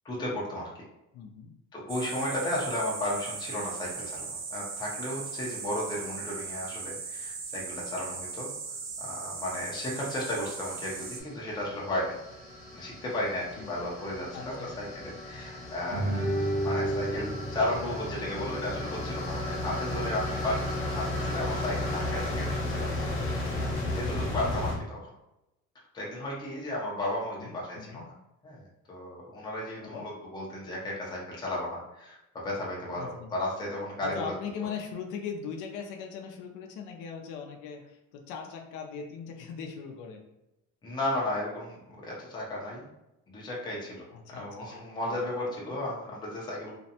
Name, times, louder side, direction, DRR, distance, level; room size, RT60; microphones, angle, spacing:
voice 1, 0.0-0.8 1.7-8.5 9.0-12.2 12.7-25.1 25.9-28.0 28.4-34.3 40.8-42.9 43.3-46.8, left 1 dB, 15° left, -4 dB, 0.5 m, -34 dB
voice 2, 1.1-1.5 13.6-13.9 14.3-14.7 27.4-28.1 29.8-30.0 33.0-33.3 34.0-40.2 44.1-44.8 45.1-45.2 45.7-45.8, left 6 dB, 90° left, 2 dB, 0.5 m, -40 dB
sound 1, 1.9-11.2, right 5 dB, 45° right, 0.4 m, -38 dB
sound 2, 10.1-24.8, left 1 dB, 45° left, 0.8 m, -34 dB
Guitar, 15.9-21.0, right 1 dB, 60° right, 0.9 m, -34 dB
2.5 x 2.1 x 2.7 m, 0.91 s
cardioid pair, 155°, 30 cm